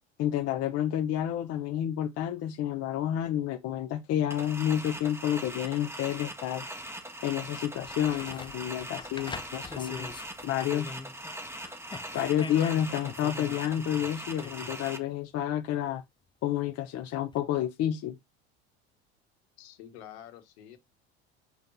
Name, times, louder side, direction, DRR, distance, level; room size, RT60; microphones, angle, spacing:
voice 1, 0.2-6.6 7.2-10.1 10.4-11.0 12.1-16.0 16.4-18.2, left 11 dB, 50° left, 0.9 m, -30 dB
sound 1, 4.3-15.0, right 1 dB, 10° right, 1.6 m, -41 dB
sound 2, 7.8-11.4 11.6-14.8 17.3-17.4, left 4 dB, 15° left, 0.6 m, -44 dB
voice 2, 19.6-20.8, left 10 dB, 75° left, 1.7 m, -48 dB
7.2 x 5.6 x 2.7 m
hypercardioid pair, 80°, 33 cm